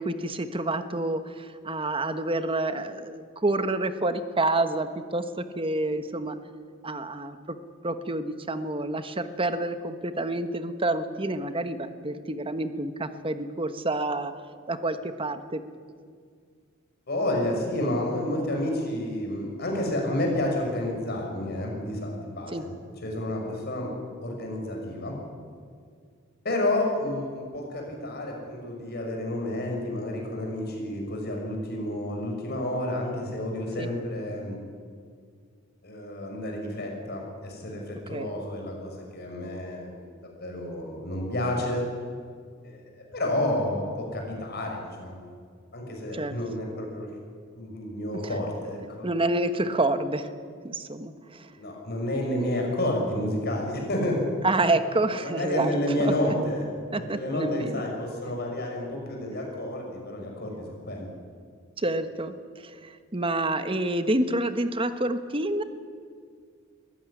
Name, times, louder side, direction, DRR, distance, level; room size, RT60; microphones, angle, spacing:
voice 1, 0.0-6.4 6.8-7.6 7.8-14.3 14.7-15.6 22.5-22.6 33.8-33.9 38.1-38.3 46.1-46.4 49.0-50.3 50.6-51.5 54.4-55.7 56.0-56.3 56.9-57.8 61.8-65.6, right 2 dB, 25° right, 10 dB, 1.2 m, -28 dB
voice 2, 17.1-22.7 23.0-23.9 24.2-25.1 26.4-34.6 35.8-40.1 40.4-41.9 42.6-42.8 43.1-45.3 45.7-47.1 47.6-49.1 51.6-54.3 55.2-56.7 56.9-61.1, left 1 dB, 50° left, 1 dB, 5.8 m, -30 dB
22.0 x 15.0 x 9.9 m, 2.1 s
head